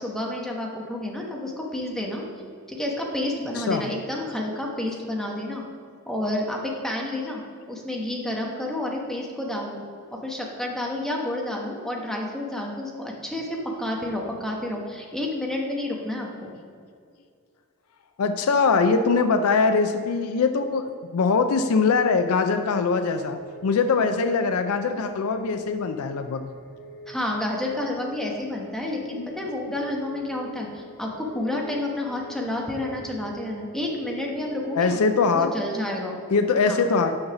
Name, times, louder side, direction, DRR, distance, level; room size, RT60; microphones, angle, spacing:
voice 1, 0.0-2.3 2.7-5.6 6.1-7.4 7.7-9.8 10.1-16.5 27.1-35.0 35.3-36.2 36.7-36.8, left 1 dB, ahead, -1 dB, 1.0 m, -30 dB
voice 2, 18.2-26.5 29.2-29.3 34.8-35.5 36.3-37.2, left 4 dB, 85° left, 8 dB, 0.4 m, -22 dB
sound 1, 23.0-35.5, right 2 dB, 60° left, 0.8 m, -44 dB
6.6 x 5.5 x 5.9 m, 2.3 s
head